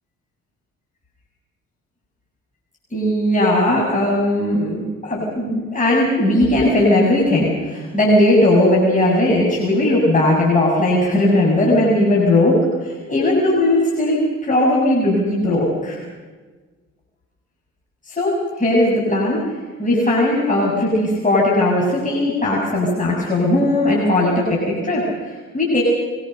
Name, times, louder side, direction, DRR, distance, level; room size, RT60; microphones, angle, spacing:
voice 1, 2.9-12.5 12.8-16.0 18.1-19.4 19.8-25.8, left 1 dB, 25° left, -4 dB, 7.2 m, -18 dB
24.0 x 20.5 x 6.7 m, 1.3 s
cardioid pair, 90°, 30 cm